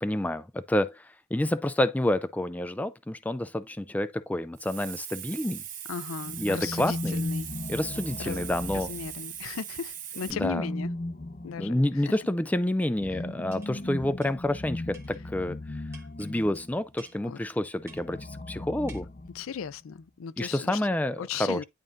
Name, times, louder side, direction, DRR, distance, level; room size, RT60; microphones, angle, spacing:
voice 1, 0.0-5.6 6.4-7.2 7.7-8.9 10.3-10.7 11.6-15.8 16.2-19.1 20.4-21.6, left 1 dB, 5° left, 0.3 m, -29 dB
Hiss, 4.6-10.3, right 10 dB, 40° right, 0.9 m, -40 dB
voice 2, 5.9-7.5 8.2-8.4 8.7-10.9 11.4-11.7 17.3-17.4 19.3-20.8 21.2-21.6, left 7 dB, 80° left, 0.4 m, -36 dB
sound 1, 6.2-9.5 10.2-16.8 17.8-19.7, left 1 dB, 40° left, 0.8 m, -37 dB
sound 2, 13.5-13.8 14.2-14.3 14.9-15.2 15.9-16.3 17.0-17.2 17.9-18.2 18.9-19.0, right 4 dB, 15° right, 1.4 m, -51 dB
10.5 x 3.7 x 2.6 m
head